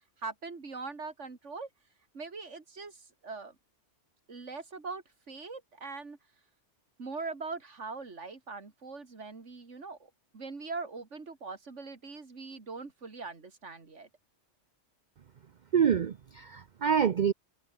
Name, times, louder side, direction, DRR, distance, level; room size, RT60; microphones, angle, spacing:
voice 1, 0.2-1.7 2.1-3.6 4.3-6.2 7.0-14.1, right 4 dB, 85° right, 2.9 m, -41 dB
voice 2, 15.7-17.3, right 7 dB, 45° right, 0.7 m, -26 dB
omnidirectional pair, 1.2 m